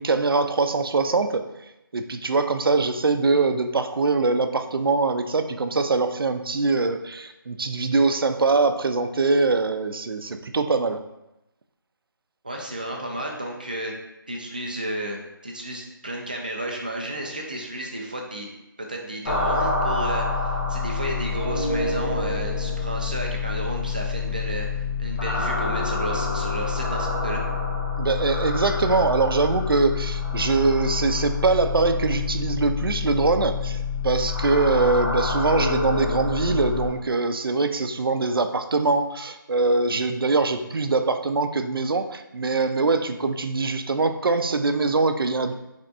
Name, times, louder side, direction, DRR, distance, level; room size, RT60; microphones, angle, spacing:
voice 1, 0.0-11.0 28.0-45.5, right 3 dB, 85° right, 8 dB, 0.4 m, -23 dB
voice 2, 12.4-13.9 14.3-18.5 18.8-24.7 25.0-27.4, right 1 dB, 25° right, 0 dB, 0.4 m, -32 dB
sound 1, 19.3-36.9, left 4 dB, 50° left, 1.1 m, -27 dB
4.0 x 3.4 x 2.6 m, 0.91 s
figure-of-eight pair, 175°, 12 cm